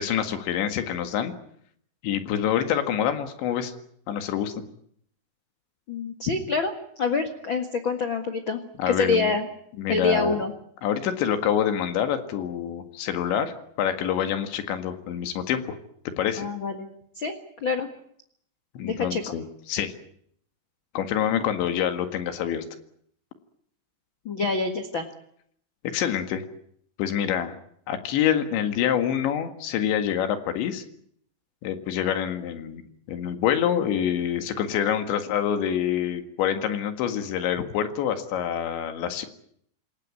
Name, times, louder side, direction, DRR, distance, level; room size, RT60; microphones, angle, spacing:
voice 1, 0.0-1.3 2.0-3.7 4.1-4.5 8.8-9.4 9.8-10.4 10.8-15.8 16.1-16.5 18.8-19.9 21.0-22.6 25.9-26.4 27.0-27.6 27.9-30.8 31.6-32.8 33.1-39.3, left 9 dB, 90° left, 8 dB, 4.2 m, -26 dB
voice 2, 5.9-8.6 8.9-9.5 9.9-10.5 16.4-16.9 17.2-17.9 18.8-19.2 24.2-25.1, left 4 dB, 65° left, 7 dB, 1.2 m, -26 dB
27.5 x 16.5 x 9.7 m, 0.68 s
omnidirectional pair, 5.0 m